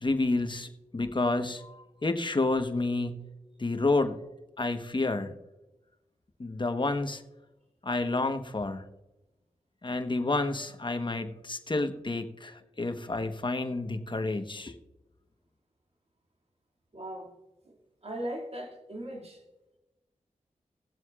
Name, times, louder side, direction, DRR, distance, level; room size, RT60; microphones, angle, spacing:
voice 1, 0.0-3.2 3.6-4.2 4.6-5.3 6.4-7.2 7.8-8.8 9.8-14.8, left 2 dB, 35° left, 1.2 m, -30 dB
voice 2, 16.9-17.4 17.6-17.8 18.0-19.4, right 1 dB, 50° right, 2.3 m, -38 dB
19.5 x 7.6 x 2.4 m
cardioid pair, 45°, 14 cm